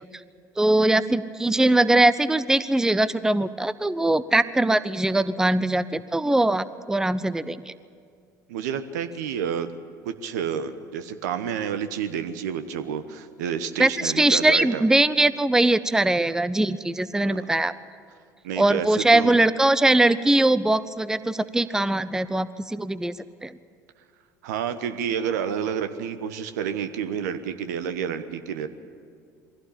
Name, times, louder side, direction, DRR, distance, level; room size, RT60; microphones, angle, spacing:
voice 1, 0.6-7.7 13.8-17.7 18.6-23.1 23.4-23.5, right 2 dB, 5° right, 16 dB, 0.6 m, -21 dB
voice 2, 8.5-9.7 10.0-14.9 17.2-17.4 18.4-19.4 24.4-28.7, right 8 dB, 70° right, 11 dB, 1.1 m, -29 dB
22.5 x 16.0 x 8.6 m, 2.2 s
figure-of-eight pair, 65°, 10 cm